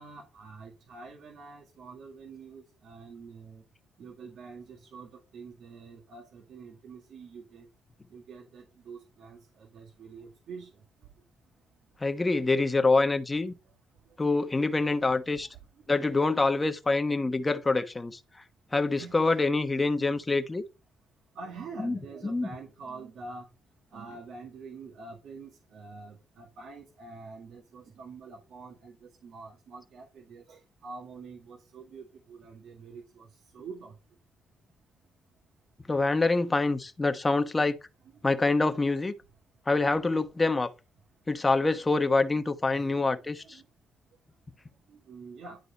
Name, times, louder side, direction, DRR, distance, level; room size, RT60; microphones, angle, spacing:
voice 1, 0.0-3.6 4.0-7.7 8.1-10.7 13.7-13.8 19.0-19.4 21.4-23.5 23.9-33.9 42.7-43.6 44.9-45.6, right 4 dB, 65° right, 1.9 m, -46 dB
voice 2, 12.0-13.5 14.2-15.5 15.9-18.2 18.7-20.6 21.8-22.0 22.2-22.5 35.9-37.8 38.2-39.2 39.7-40.7 41.3-43.6, left 3 dB, 20° left, 1.0 m, -26 dB
11.0 x 3.9 x 4.1 m
cardioid pair, 90°, 0 cm